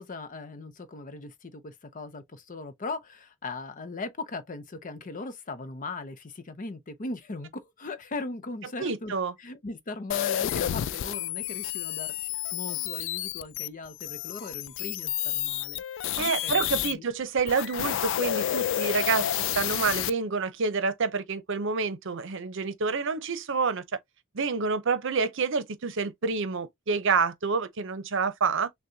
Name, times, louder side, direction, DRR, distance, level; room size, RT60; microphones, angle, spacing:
voice 1, 0.0-9.1 9.4-17.1, left 3 dB, 40° left, 0.7 m, -39 dB
voice 2, 8.8-9.3 16.2-23.8 24.3-28.7, right 5 dB, 65° right, 0.7 m, -28 dB
sound 1, 10.1-16.9 17.4-20.1, left 11 dB, 65° left, 0.3 m, -30 dB
6.5 x 2.2 x 2.7 m
head